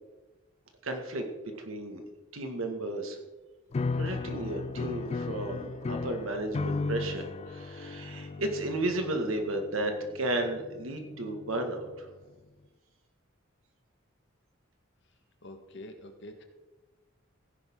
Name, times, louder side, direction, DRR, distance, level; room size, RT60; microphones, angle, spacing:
voice 1, 0.8-2.0 2.3-3.2 4.0-12.1, right 1 dB, 90° right, 4 dB, 2.0 m, -33 dB
sound 1, 3.7-12.0, left 3 dB, 30° left, 0.3 m, -36 dB
voice 2, 15.4-16.4, left 1 dB, 65° left, 6 dB, 1.6 m, -46 dB
16.0 x 10.5 x 3.8 m, 1.2 s
head